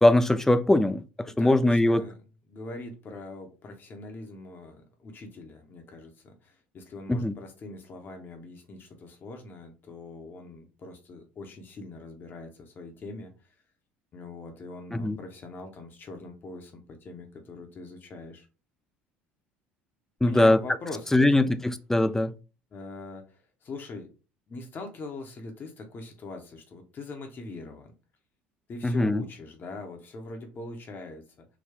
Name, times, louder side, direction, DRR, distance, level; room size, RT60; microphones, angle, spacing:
voice 1, 0.0-2.0 7.1-7.4 14.9-15.2 20.2-20.6 21.1-22.3 28.8-29.2, left 1 dB, 10° left, 0.3 m, -21 dB
voice 2, 1.3-2.2 2.5-13.5 14.1-18.5 20.2-21.5 22.7-24.1 24.5-27.9 28.7-31.5, left 2 dB, 35° left, 0.8 m, -42 dB
3.9 x 2.2 x 2.8 m
figure-of-eight pair, 60°, 6 cm